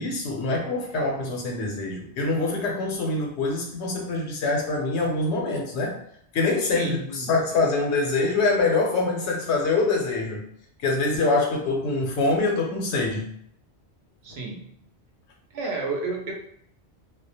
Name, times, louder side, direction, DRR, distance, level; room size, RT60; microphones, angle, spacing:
voice 1, 0.0-6.0 6.3-10.4 10.8-13.3, left 3 dB, 85° left, 0 dB, 0.9 m, -25 dB
voice 2, 6.6-7.3 14.2-14.7 15.5-16.3, right 3 dB, 75° right, 1 dB, 0.9 m, -31 dB
2.4 x 2.1 x 2.7 m, 0.66 s
omnidirectional pair, 1.1 m